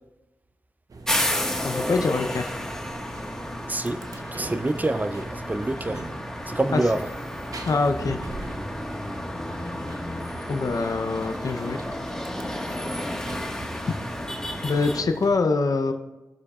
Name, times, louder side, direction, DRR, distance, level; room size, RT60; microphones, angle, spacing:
sound 1, 0.9-15.4, right 2 dB, 60° right, 1.0 m, -40 dB
sound 2, 1.1-15.0, left 1 dB, 10° left, 1.6 m, -32 dB
voice 1, 1.6-2.5 6.7-6.8 7.6-8.2 10.5-11.8 13.9-14.0 14.6-15.9, left 4 dB, 55° left, 0.7 m, -24 dB
voice 2, 3.7-4.0 4.3-6.1 6.5-7.1, right 2 dB, 25° right, 0.6 m, -26 dB
19.0 x 6.6 x 2.5 m
cardioid pair, 45°, 7 cm